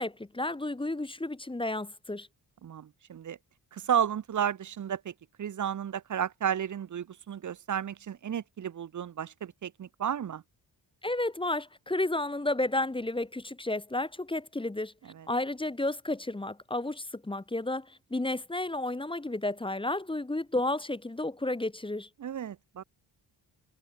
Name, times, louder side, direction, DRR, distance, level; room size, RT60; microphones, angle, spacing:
voice 1, 0.0-2.3 11.0-14.9 15.3-22.1, left 2 dB, 10° left, 0.8 m, -32 dB
voice 2, 2.6-3.4 3.7-5.1 5.4-10.4 15.2-15.3 22.2-22.8, right 9 dB, 40° right, 0.6 m, -32 dB
cardioid pair, 50°, 48 cm